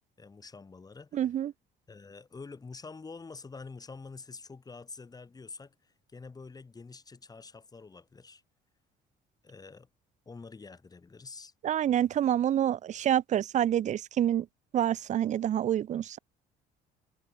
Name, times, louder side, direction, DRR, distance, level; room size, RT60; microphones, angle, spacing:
voice 1, 0.2-1.2 1.9-8.4 9.4-9.9 10.3-11.5, left 4 dB, 20° left, 2.8 m, -47 dB
voice 2, 1.1-1.5 11.6-14.5 14.7-16.2, right 10 dB, 45° right, 0.5 m, -27 dB
cardioid pair, 110°, 17 cm